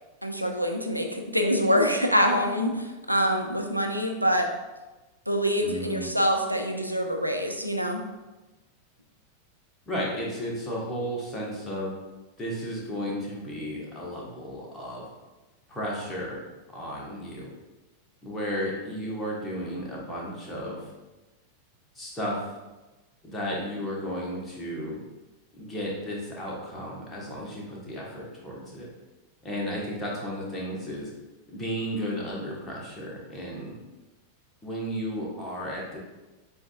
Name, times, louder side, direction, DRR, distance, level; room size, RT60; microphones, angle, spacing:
voice 1, 0.2-4.5 5.3-8.0, equal, 90° right, 3 dB, 0.5 m, -25 dB
voice 2, 5.6-6.1 9.9-11.9 12.4-15.1 15.7-16.4 16.7-17.5 18.2-20.9 21.9-22.4 23.2-25.0 25.6-28.9 29.4-31.1 31.5-33.7 34.6-36.0, equal, 15° left, -4 dB, 1.3 m, -33 dB
7.6 x 2.6 x 2.4 m, 1.1 s
figure-of-eight pair, 90°, 0 cm